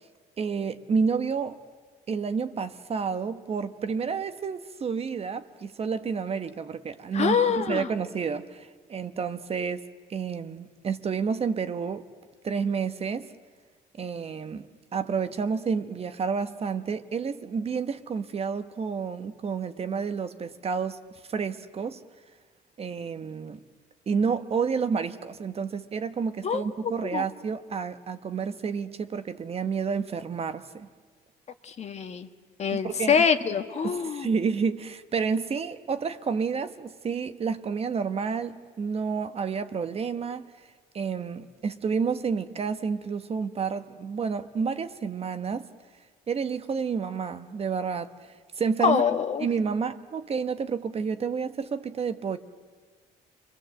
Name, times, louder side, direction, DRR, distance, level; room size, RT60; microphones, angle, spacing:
voice 1, 0.4-1.6 2.1-9.8 10.1-12.1 12.4-13.3 14.0-21.0 21.3-22.0 22.8-23.6 24.1-30.9 32.7-33.3 33.8-40.4 40.9-45.7 46.3-49.0 49.4-52.4, right 5 dB, 35° right, 1.0 m, -30 dB
voice 2, 7.1-7.9 26.4-27.2 31.6-32.3 32.6-34.3 48.8-49.5, left 6 dB, 40° left, 1.4 m, -25 dB
29.5 x 22.5 x 7.8 m
cardioid pair, 110°, 17 cm